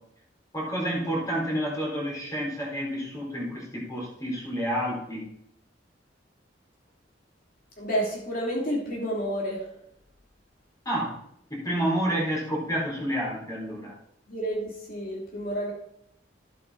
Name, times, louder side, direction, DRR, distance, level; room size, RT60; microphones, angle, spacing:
voice 1, 0.5-5.3 10.9-11.1 11.5-14.0, equal, 20° left, -4 dB, 4.0 m, -29 dB
voice 2, 7.8-9.6 14.3-15.7, equal, 50° left, -2 dB, 3.1 m, -30 dB
12.0 x 8.6 x 4.2 m, 0.72 s
head